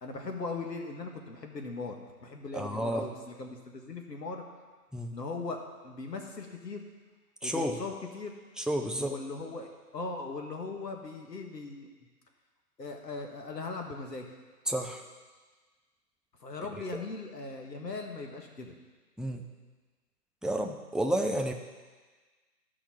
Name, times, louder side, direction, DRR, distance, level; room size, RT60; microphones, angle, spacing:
voice 1, 0.0-4.4 5.1-6.8 7.4-8.3 9.0-11.9 12.8-14.3 16.4-18.7, left 3 dB, 90° left, 3 dB, 1.8 m, -39 dB
voice 2, 2.5-3.1 4.9-5.1 7.4-7.8 8.6-9.1 14.7-15.0 19.2-19.5 20.4-21.5, right 1 dB, ahead, 2 dB, 0.3 m, -31 dB
12.5 x 5.8 x 4.3 m, 1.4 s
hypercardioid pair, 170°, 48 cm